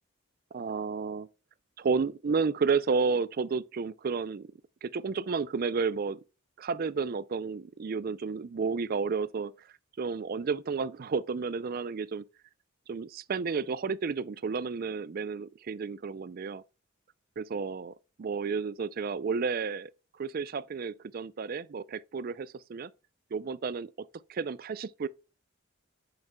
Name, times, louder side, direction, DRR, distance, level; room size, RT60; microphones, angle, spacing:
voice 1, 0.5-1.3 1.8-4.5 4.8-6.2 6.6-9.7 10.0-12.2 12.9-16.6 17.4-19.9 20.2-22.9 23.3-23.9 24.3-25.1, right 5 dB, 45° right, 0.4 m, -31 dB
10.5 x 4.8 x 2.2 m
head